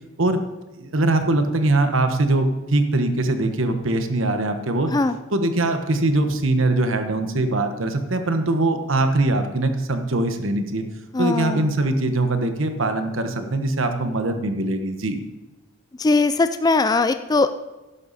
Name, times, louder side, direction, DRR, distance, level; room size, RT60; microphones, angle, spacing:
voice 1, 0.8-4.9 5.3-10.9 11.2-15.2, right 2 dB, 80° right, 7 dB, 1.2 m, -22 dB
voice 2, 11.1-11.7 16.0-17.5, left 3 dB, 20° left, 10 dB, 0.3 m, -20 dB
12.5 x 11.0 x 4.2 m, 1.1 s
head